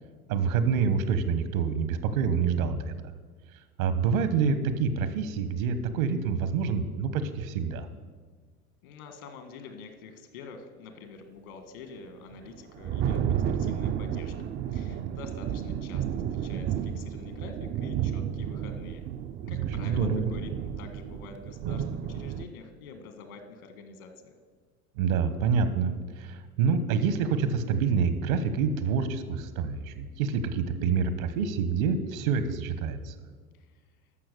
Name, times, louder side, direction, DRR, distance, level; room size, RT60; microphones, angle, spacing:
voice 1, 0.3-2.9 3.8-7.9 19.4-20.3 25.0-33.1, right 6 dB, 65° right, 11 dB, 1.2 m, -27 dB
voice 2, 8.8-19.1 19.5-20.5 20.8-24.3 33.5-33.7, left 5 dB, 70° left, 7 dB, 1.7 m, -46 dB
Thunder, 12.3-22.5, right 9 dB, 25° right, 0.4 m, -32 dB
13.0 x 6.1 x 6.7 m, 1.5 s
hypercardioid pair, 80°, 44 cm